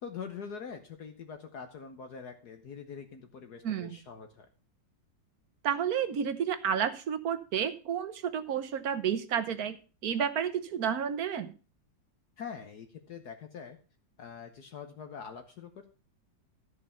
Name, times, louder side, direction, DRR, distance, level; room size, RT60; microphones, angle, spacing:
voice 1, 0.0-4.5 12.4-13.8 14.2-15.9, left 6 dB, 60° left, 6 dB, 1.5 m, -44 dB
voice 2, 3.6-3.9 5.6-9.8 10.0-11.5, right 8 dB, 55° right, 12 dB, 1.3 m, -31 dB
13.5 x 5.6 x 6.7 m, 0.35 s
omnidirectional pair, 2.1 m